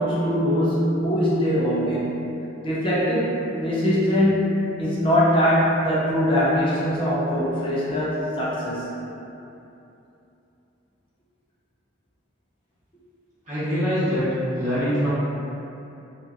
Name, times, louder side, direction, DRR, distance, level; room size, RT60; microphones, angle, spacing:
voice 1, 0.0-2.2 2.6-4.5 4.8-8.9, equal, 25° left, -8 dB, 0.5 m, -22 dB
voice 2, 13.5-14.2 14.6-15.1, equal, 40° right, -13 dB, 0.9 m, -23 dB
2.5 x 2.3 x 2.3 m, 2.8 s
head